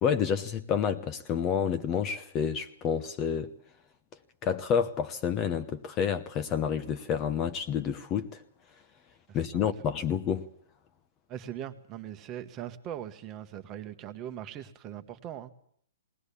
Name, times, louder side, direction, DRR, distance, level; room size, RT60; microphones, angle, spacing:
voice 1, 0.0-3.5 4.4-8.4 9.3-10.5, left 7 dB, 20° left, 0.9 m, -29 dB
voice 2, 9.3-9.7 11.3-15.5, right 10 dB, 20° right, 1.2 m, -40 dB
19.5 x 19.0 x 8.5 m
hypercardioid pair, 160°, 0 cm